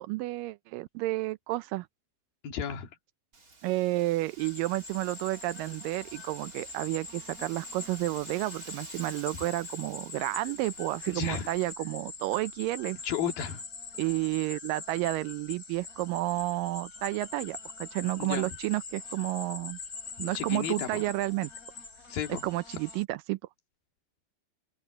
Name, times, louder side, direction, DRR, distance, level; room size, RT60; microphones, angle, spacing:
voice 1, 0.0-1.9 3.6-13.0 14.0-19.8 20.2-21.5 22.4-23.4, right 19 dB, 80° right, 2.1 m, -31 dB
voice 2, 2.4-3.0 11.1-11.5 13.0-13.6 18.2-18.5 20.3-21.0 22.1-22.4 22.7-22.8, left 8 dB, 80° left, 3.8 m, -33 dB
Wind, 3.3-11.7, right 3 dB, 25° right, 2.9 m, -52 dB
sound 1, 4.4-23.0, left 4 dB, 25° left, 3.7 m, -43 dB
open air
omnidirectional pair, 4.1 m